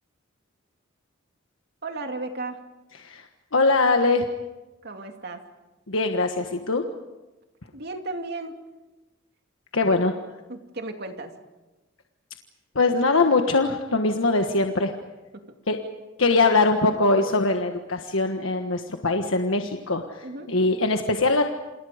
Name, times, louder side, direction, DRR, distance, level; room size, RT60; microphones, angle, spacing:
voice 1, 1.8-2.6 4.8-5.4 7.7-8.6 9.9-10.0 10.5-11.3 15.3-15.6 20.2-20.5, right 2 dB, 55° right, 4 dB, 2.5 m, -35 dB
voice 2, 3.0-4.3 5.9-6.8 9.7-10.1 12.7-14.9 15.7-15.8 16.2-21.4, left 3 dB, 85° left, 5 dB, 1.4 m, -22 dB
28.5 x 27.5 x 5.1 m, 1.1 s
head